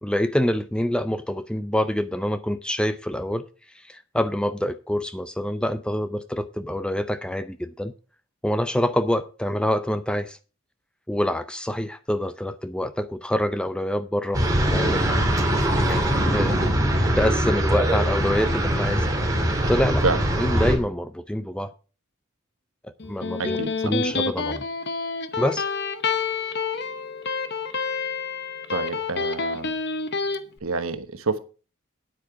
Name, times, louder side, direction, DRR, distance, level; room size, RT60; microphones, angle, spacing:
voice 1, 0.0-3.4 3.7-7.9 8.4-10.4 11.1-14.4 14.7-15.1 15.7-19.1 19.7-20.0 20.4-21.7 22.8-23.6 23.8-24.7 25.4-25.7, left 1 dB, 5° left, 0.4 m, -26 dB
sound 1, 14.3-20.8, right 1 dB, 15° right, 2.5 m, -22 dB
Electric guitar, 23.0-30.4, left 4 dB, 50° left, 0.9 m, -28 dB
voice 2, 23.4-23.9 28.7-29.7 30.6-31.4, right 3 dB, 75° right, 1.1 m, -27 dB
9.4 x 8.7 x 4.7 m
head